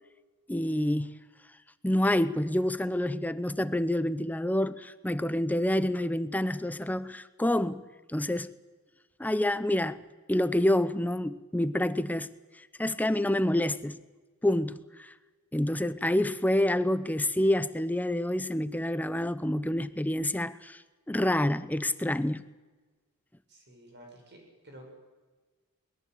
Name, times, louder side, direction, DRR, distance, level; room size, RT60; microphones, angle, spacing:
voice 1, 0.5-1.2 1.8-7.8 8.1-8.5 9.2-10.0 10.3-12.3 12.8-14.0 14.4-15.1 15.5-20.8 21.1-22.5, left 1 dB, 5° left, 14 dB, 0.6 m, -27 dB
voice 2, 23.5-24.9, right 1 dB, 50° right, 1 dB, 7.1 m, -51 dB
22.5 x 20.0 x 8.2 m, 1.3 s
head